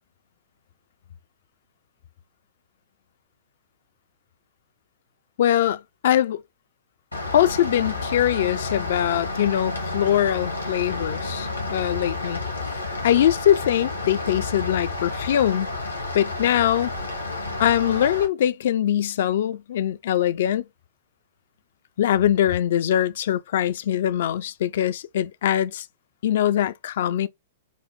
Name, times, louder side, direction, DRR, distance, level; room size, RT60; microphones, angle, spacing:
voice 1, 5.4-6.4 7.3-12.4 13.0-15.7 16.1-16.9 17.6-20.7 22.0-25.9 26.2-27.3, left 11 dB, 55° left, 0.4 m, -22 dB
Rain, 7.1-18.3, left 3 dB, 85° left, 1.2 m, -30 dB
5.2 x 2.0 x 3.9 m
figure-of-eight pair, 105°, 0 cm